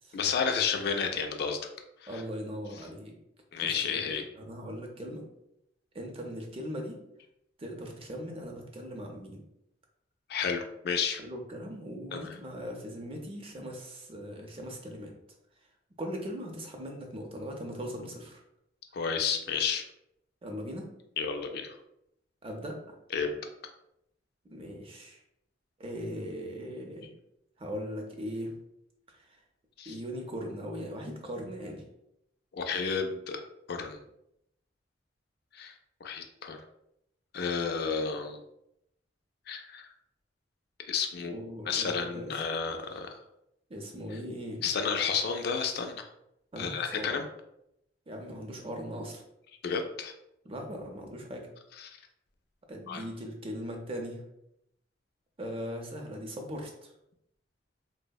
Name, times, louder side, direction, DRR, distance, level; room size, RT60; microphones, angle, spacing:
voice 1, 0.1-1.6 2.0-2.2 3.5-4.2 10.3-11.2 12.1-12.3 18.9-19.8 21.2-21.8 23.1-23.4 29.8-30.0 32.5-33.4 33.7-34.0 35.5-35.7 36.0-36.6 37.3-38.4 39.5-39.9 40.9-41.3 41.6-43.1 44.6-46.0 46.6-47.2 49.6-50.1 51.8-52.0 52.9-53.0, left 6 dB, 60° left, 5 dB, 0.3 m, -31 dB
voice 2, 2.1-3.1 3.6-4.0 4.4-5.2 5.9-7.0 7.6-9.4 11.2-15.1 16.0-18.4 20.4-20.9 22.4-22.9 24.5-25.2 25.8-27.1 27.6-28.5 29.1-29.2 29.9-31.8 41.3-42.4 43.7-44.6 46.5-47.2 48.1-49.2 50.4-51.5 52.7-54.2 55.4-56.9, equal, 30° right, 2 dB, 0.5 m, -39 dB
3.4 x 2.0 x 2.3 m, 0.80 s
head